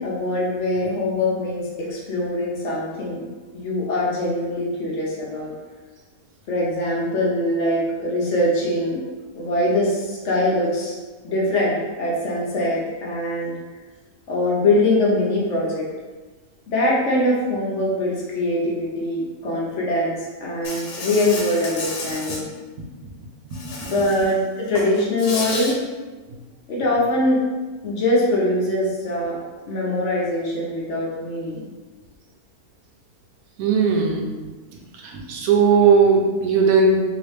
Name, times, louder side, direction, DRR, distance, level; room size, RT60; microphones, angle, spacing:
voice 1, 0.0-3.3 3.5-5.5 6.5-9.0 9.4-11.0 11.2-13.5 14.3-15.9 16.7-22.5 23.8-25.7 26.7-27.4 27.8-29.4 29.7-31.7, left 1 dB, 60° left, -4 dB, 0.9 m, -22 dB
Insect, 20.6-22.4 23.5-24.3 24.7-25.7, left 2 dB, 80° left, 1.2 m, -31 dB
voice 2, 33.6-34.3 35.1-37.1, right 5 dB, 75° right, 0 dB, 1.1 m, -17 dB
3.1 x 3.0 x 3.1 m, 1.3 s
omnidirectional pair, 1.6 m